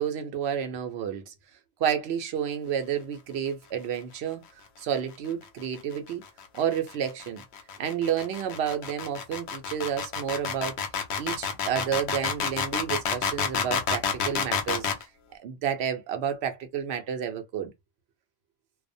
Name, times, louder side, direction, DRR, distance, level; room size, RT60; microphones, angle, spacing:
voice 1, 0.0-1.3 1.8-4.4 4.8-6.2 6.5-7.4 7.8-10.8 11.2-14.9 15.4-17.7, right 8 dB, 80° right, 0.9 m, -30 dB
sound 1, 5.8-15.0, left 6 dB, 85° left, 0.9 m, -29 dB
2.3 x 2.0 x 2.6 m
omnidirectional pair, 1.1 m